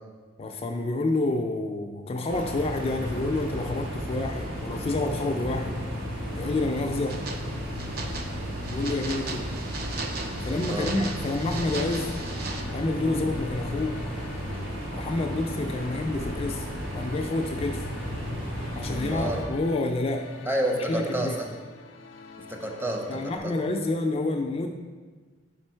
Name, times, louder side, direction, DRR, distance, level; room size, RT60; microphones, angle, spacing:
voice 1, 0.4-5.8 6.3-7.2 8.7-9.5 10.4-12.2 12.7-14.0 14.9-16.7 16.9-17.9 18.8-20.3 20.9-21.4 23.1-24.7, left 2 dB, 30° left, 3 dB, 0.3 m, -28 dB
sound 1, 2.3-19.4, equal, 80° right, 1.6 m, -34 dB
sound 2, 7.1-12.6, right 4 dB, 55° right, 0.5 m, -38 dB
sound 3, 9.7-23.4, left 3 dB, 80° left, 0.5 m, -46 dB
voice 2, 18.9-19.4 20.5-21.5 22.5-23.5, right 1 dB, 10° right, 1 dB, 0.6 m, -29 dB
5.2 x 4.9 x 4.4 m, 1.4 s
head